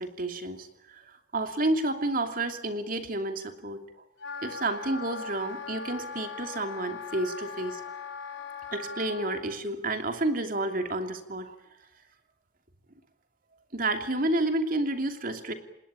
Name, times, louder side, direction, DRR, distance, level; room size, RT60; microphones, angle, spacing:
voice 1, 0.0-3.8 4.4-7.8 8.7-11.6 13.7-15.5, right 2 dB, 45° right, 6 dB, 2.9 m, -30 dB
Wind instrument woodwind instrument, 4.2-9.4, left 4 dB, 85° left, 4.2 m, -39 dB
27.5 x 20.0 x 8.8 m, 0.83 s
head